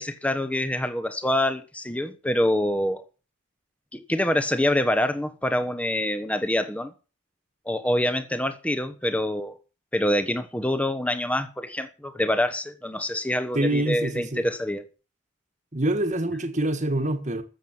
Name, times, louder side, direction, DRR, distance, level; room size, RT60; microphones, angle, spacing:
voice 1, 0.0-3.0 3.9-6.9 7.7-9.6 9.9-14.9, left 1 dB, 5° left, 1.0 m, -26 dB
voice 2, 13.5-14.5 15.7-17.4, right 1 dB, 35° right, 1.6 m, -25 dB
14.0 x 7.6 x 7.2 m
head